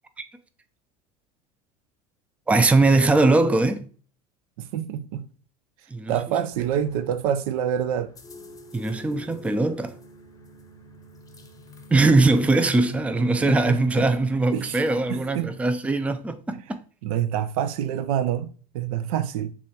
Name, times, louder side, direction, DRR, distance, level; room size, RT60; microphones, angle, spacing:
voice 1, 2.5-3.8 5.9-6.1 8.7-9.9 11.9-16.8, right 2 dB, 5° right, 0.4 m, -21 dB
voice 2, 4.6-5.3 6.1-8.1 13.4-14.1 14.5-14.8 15.1-15.6 16.5-16.6 17.0-19.5, right 9 dB, 70° right, 0.5 m, -27 dB
sound 1, 6.5-15.2, right 2 dB, 20° left, 0.8 m, -45 dB
6.7 x 2.4 x 2.8 m
hypercardioid pair, 85°, 19 cm